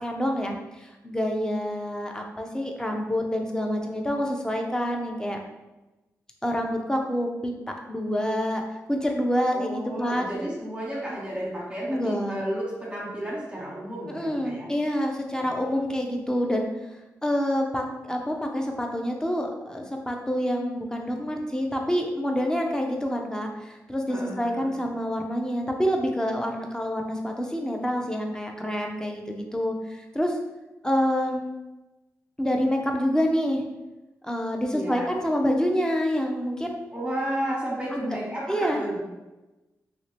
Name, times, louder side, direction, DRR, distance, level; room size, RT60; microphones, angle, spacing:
voice 1, 0.0-5.4 6.4-8.6 8.9-10.3 11.9-12.4 14.1-16.7 17.2-30.4 30.8-31.4 32.4-33.6 34.2-36.8 37.9-38.2 38.5-38.8, equal, 10° left, 2 dB, 0.7 m, -27 dB
voice 2, 9.5-14.7 24.1-24.7 34.7-35.1 36.9-39.0, right 1 dB, 15° right, -6 dB, 1.3 m, -32 dB
3.0 x 2.7 x 3.3 m, 1.1 s
supercardioid pair, 45°, 7 cm